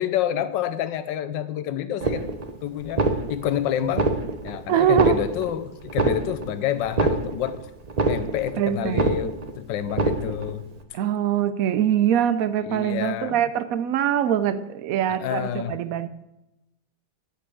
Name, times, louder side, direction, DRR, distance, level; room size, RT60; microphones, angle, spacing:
voice 1, 0.0-2.3 2.6-4.1 4.4-7.6 8.1-10.6 12.6-13.4 15.1-15.8, left 10 dB, 70° left, 1.4 m, -28 dB
sound 1, 2.0-2.5 2.8-3.6 3.9-4.6 4.8-5.5 5.9-6.5 6.8-7.6 7.8-8.6 8.8-9.5 9.9-10.5, right 3 dB, 45° right, 0.5 m, -24 dB
voice 2, 4.7-5.2 8.6-9.1 10.9-16.1, right 9 dB, 85° right, 0.7 m, -23 dB
11.5 x 5.6 x 8.3 m
omnidirectional pair, 2.1 m